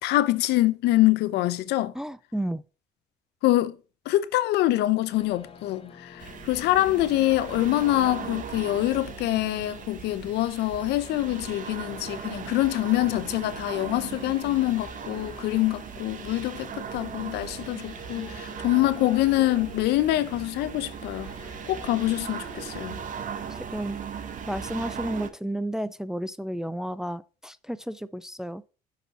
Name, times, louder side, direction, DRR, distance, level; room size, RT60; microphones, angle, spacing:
voice 1, 0.0-1.9 3.4-3.8 4.1-21.3 21.7-23.0, left 16 dB, 80° left, 0.7 m, -25 dB
voice 2, 2.0-2.6 23.7-24.0 24.5-28.6, right 1 dB, 5° right, 0.4 m, -32 dB
sound 1, 5.1-24.5, left 5 dB, 35° left, 1.4 m, -49 dB
sound 2, 6.2-25.3, right 7 dB, 50° right, 0.9 m, -38 dB
6.0 x 5.4 x 5.5 m
cardioid pair, 110°, 17 cm